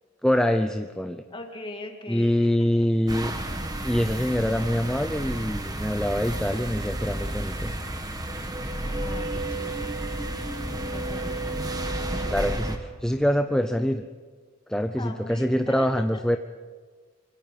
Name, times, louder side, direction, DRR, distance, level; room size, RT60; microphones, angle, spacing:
voice 1, 0.2-1.2 2.1-3.3 3.8-7.7 12.3-14.0 14.7-16.4, equal, 5° left, 7 dB, 0.6 m, -25 dB
voice 2, 1.3-2.9 8.5-9.9 10.7-11.4 11.9-12.4 15.0-15.9 16.1-16.2, left 2 dB, 25° left, 3 dB, 2.4 m, -41 dB
sound 1, 3.1-12.8, right 1 dB, 20° right, 1.8 m, -31 dB
25.5 x 23.5 x 5.5 m, 1.5 s
head